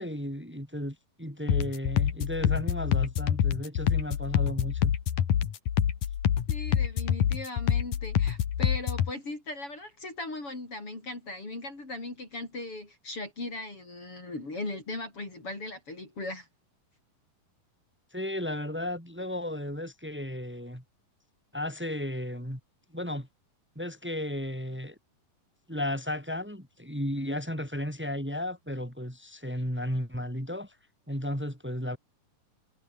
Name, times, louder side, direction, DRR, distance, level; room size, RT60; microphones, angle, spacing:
voice 1, 0.0-4.9 18.1-20.8 21.5-22.6 22.9-23.3 23.8-25.0 25.7-30.8 31.1-32.0, left 1 dB, 5° right, 6.8 m, -34 dB
sound 1, 1.5-9.1, left 9 dB, 65° left, 3.5 m, -26 dB
voice 2, 6.5-16.5, left 2 dB, 35° left, 7.4 m, -38 dB
omnidirectional pair, 4.1 m